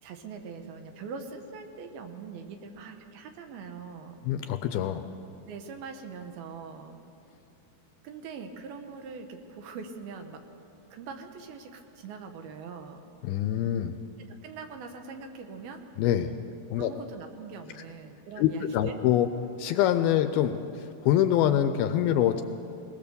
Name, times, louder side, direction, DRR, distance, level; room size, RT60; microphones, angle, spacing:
voice 1, 0.0-4.2 5.5-7.0 8.0-10.4 10.9-13.0 14.4-15.8 16.8-18.9, right 5 dB, 70° right, 5 dB, 2.9 m, -42 dB
voice 2, 4.3-5.0 13.2-14.0 16.0-16.3 16.7-16.9 18.4-19.3 19.6-22.4, left 11 dB, 80° left, 9 dB, 2.3 m, -25 dB
20.5 x 20.0 x 6.9 m, 2.7 s
omnidirectional pair, 4.7 m